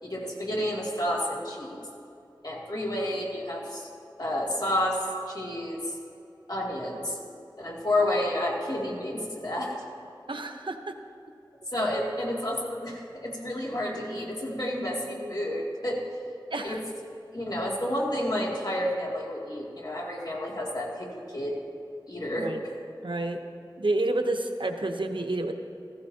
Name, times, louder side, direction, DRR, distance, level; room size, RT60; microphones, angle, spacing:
voice 1, 0.0-1.9 2.4-3.9 4.2-6.0 6.5-7.2 7.6-9.8 11.7-16.0 16.6-16.8 17.3-21.6 22.1-22.5, left 1 dB, 55° left, -4 dB, 2.5 m, -30 dB
voice 2, 10.3-10.8 16.5-16.8 22.4-22.6 23.0-23.4 23.8-25.5, right 2 dB, 85° right, 5 dB, 0.8 m, -29 dB
15.0 x 15.0 x 2.8 m, 2.6 s
wide cardioid pair, 45°, 8 cm